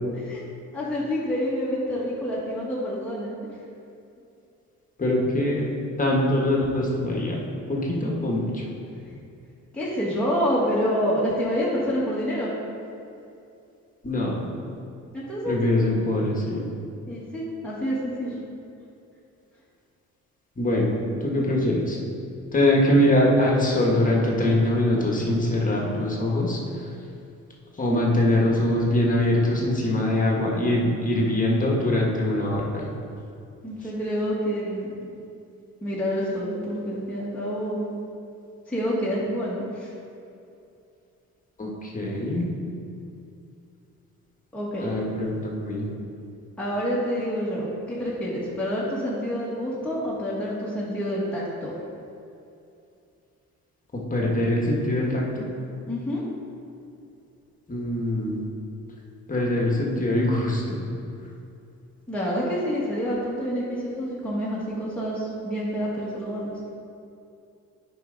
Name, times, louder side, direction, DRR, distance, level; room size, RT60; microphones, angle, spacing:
voice 1, 0.1-0.4 0.7-3.3 9.0-9.2 9.7-12.5 15.1-15.6 17.1-18.4 33.6-34.9 35.8-37.9 38.7-39.9 44.5-44.9 46.6-51.7 55.9-56.2 62.1-66.5, equal, 5° left, -8 dB, 1.8 m, -27 dB
voice 2, 5.0-5.7 6.0-7.3 7.7-8.6 14.0-14.5 15.5-16.6 20.6-22.0 22.5-26.6 27.8-32.9 41.6-42.5 44.8-45.9 54.1-55.5 57.7-58.4 59.3-60.8, left 1 dB, 25° left, -3 dB, 1.6 m, -23 dB
9.2 x 5.3 x 3.9 m, 2.6 s
cardioid pair, 90°, 30 cm